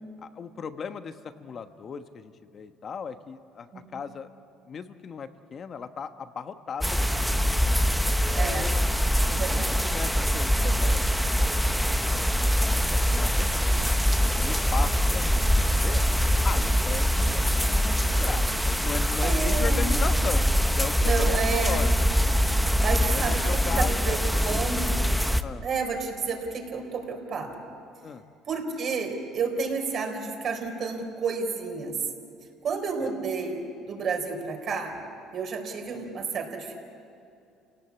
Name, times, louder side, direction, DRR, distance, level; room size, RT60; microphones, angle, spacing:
voice 1, 0.2-4.3 4.7-7.8 8.3-8.9 9.5-11.1 12.1-13.9 14.2-16.0 16.4-20.4 20.8-22.4 23.1-24.7 25.4-25.6 28.0-28.2 33.0-33.1, left 6 dB, 35° left, 9 dB, 1.1 m, -37 dB
sound 1, 6.8-25.4, equal, ahead, 0.8 m, -23 dB
voice 2, 8.3-8.7 9.3-9.8 19.2-19.9 21.0-21.9 22.8-25.0 25.6-27.5 28.5-32.0 32.6-35.0 35.3-36.8, right 4 dB, 45° right, 3 dB, 4.1 m, -31 dB
29.5 x 17.5 x 8.4 m, 2.5 s
cardioid pair, 125°, 0 cm